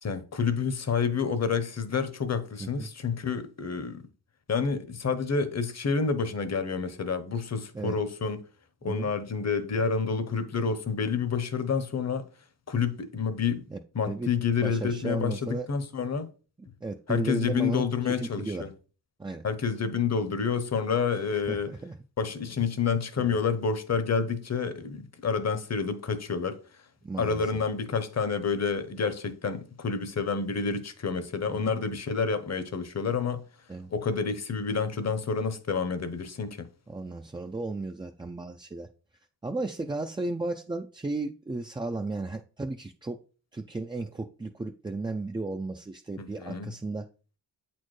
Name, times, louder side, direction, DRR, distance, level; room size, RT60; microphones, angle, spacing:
voice 1, 0.0-4.0 4.5-8.4 8.8-12.3 12.7-13.7 13.9-16.3 17.1-18.7 19.4-21.7 22.2-26.6 27.2-33.4 33.9-36.7 46.2-46.7, left 5 dB, 35° left, 0.8 m, -29 dB
voice 2, 14.6-15.7 16.8-18.6 19.2-19.4 21.5-21.9 23.2-23.4 27.0-27.5 31.5-31.7 33.7-33.9 36.9-38.9 39.4-43.2 43.5-47.1, right 2 dB, 10° right, 0.3 m, -34 dB
8.1 x 4.3 x 3.1 m
wide cardioid pair, 100°, 43 cm